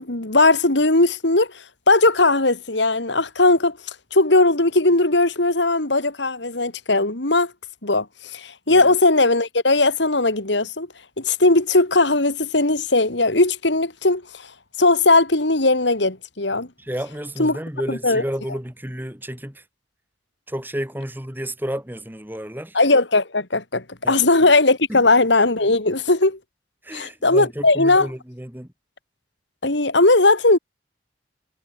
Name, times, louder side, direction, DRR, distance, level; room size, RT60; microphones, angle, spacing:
voice 1, 0.0-3.8 4.1-7.5 7.8-8.1 8.3-10.9 11.2-14.2 14.8-16.7 17.4-17.6 18.0-18.2 22.7-26.4 26.9-28.1 29.6-30.6, left 2 dB, 75° left, 3.0 m, -18 dB
voice 2, 16.8-19.6 20.5-22.8 24.0-24.5 24.9-25.0 26.8-28.7, equal, 10° right, 3.6 m, -31 dB
head